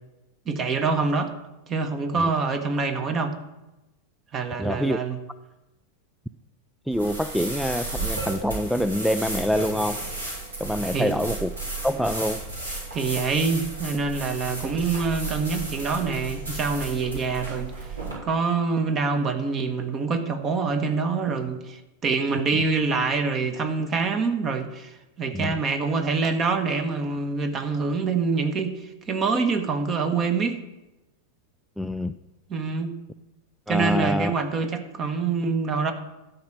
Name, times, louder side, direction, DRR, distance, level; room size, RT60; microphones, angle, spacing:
voice 1, 0.5-1.3 1.7-3.3 4.3-5.2 10.9-11.1 12.9-17.7 18.2-30.6 32.5-32.9 33.7-35.9, right 4 dB, 25° right, 8 dB, 1.3 m, -25 dB
voice 2, 4.6-5.0 6.9-10.1 10.6-11.5 11.8-12.5 25.3-25.6 31.8-32.2 33.7-34.3, equal, ahead, 11 dB, 0.3 m, -26 dB
sound 1, 6.9-18.1, right 3 dB, 75° right, 4.3 m, -34 dB
12.5 x 5.4 x 7.2 m, 1.0 s
figure-of-eight pair, 90°, 0 cm